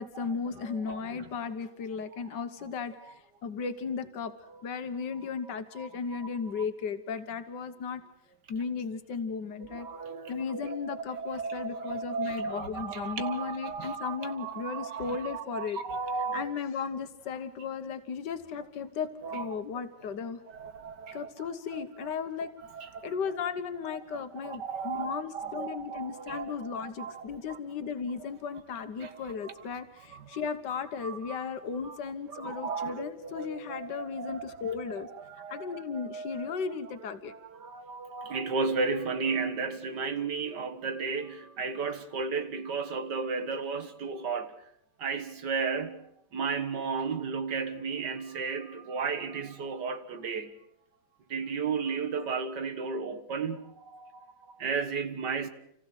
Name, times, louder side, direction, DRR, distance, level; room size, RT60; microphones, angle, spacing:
voice 1, 0.0-8.0 8.5-9.9 10.3-15.8 16.3-20.4 21.1-22.5 23.0-35.1 35.5-37.3, left 6 dB, 90° left, 1.8 m, -35 dB
voice 2, 0.7-1.0 5.8-6.3 9.7-16.5 19.2-19.6 20.5-21.3 21.7-21.8 22.7-23.1 24.1-27.6 29.0-29.5 30.1-30.2 31.0-31.4 31.8-32.0 32.3-36.5 37.3-44.5 45.0-46.1 46.3-50.5 51.3-55.5, right 5 dB, 80° right, 2.3 m, -34 dB
29.5 x 15.5 x 8.0 m
omnidirectional pair, 1.8 m